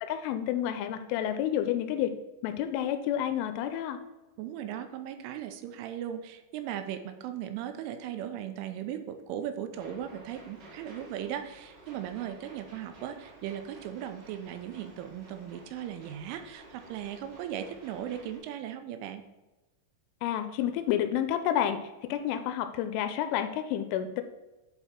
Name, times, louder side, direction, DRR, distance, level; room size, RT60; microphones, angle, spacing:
voice 1, 0.0-2.1 2.4-4.0 20.2-24.2, left 10 dB, 85° left, 9 dB, 2.9 m, -30 dB
voice 2, 4.4-19.2, right 10 dB, 85° right, 8 dB, 3.0 m, -38 dB
sound 1, 9.7-18.4, right 2 dB, 45° right, 3.9 m, -53 dB
10.5 x 4.3 x 4.4 m, 1.1 s
omnidirectional pair, 5.7 m